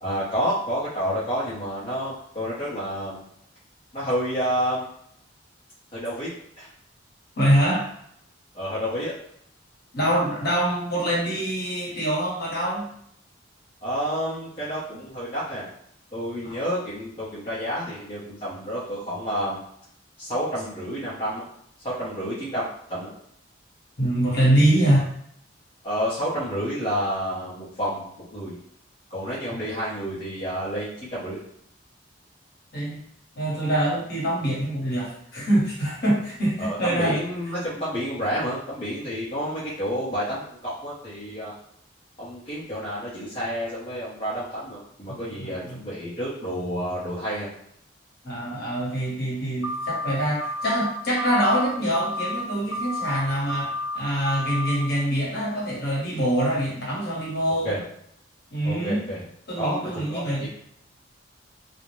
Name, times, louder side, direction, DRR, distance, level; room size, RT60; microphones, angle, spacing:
voice 1, 0.0-3.2 3.9-4.9 5.9-6.3 6.6-6.7 8.5-9.1 13.8-15.7 16.1-19.6 20.2-21.4 21.8-23.1 25.8-28.5 29.1-31.4 36.6-41.5 42.2-47.5 57.6-57.8 58.6-59.2 59.6-60.5, equal, 30° left, -10 dB, 0.6 m, -29 dB
voice 2, 7.4-7.8 9.9-12.9 16.5-16.6 24.0-25.1 32.7-33.0 33.3-37.2 45.1-45.8 48.2-57.8 58.5-59.1 59.5-60.5, right 1 dB, 55° left, -5 dB, 0.9 m, -24 dB
sound 1, 49.6-50.1 50.4-50.9 51.2-51.7 51.9-52.4 52.7-53.2 53.5-54.0 54.3-54.7, left 1 dB, 90° left, 0.5 m, -30 dB
2.4 x 2.0 x 2.9 m, 0.70 s
head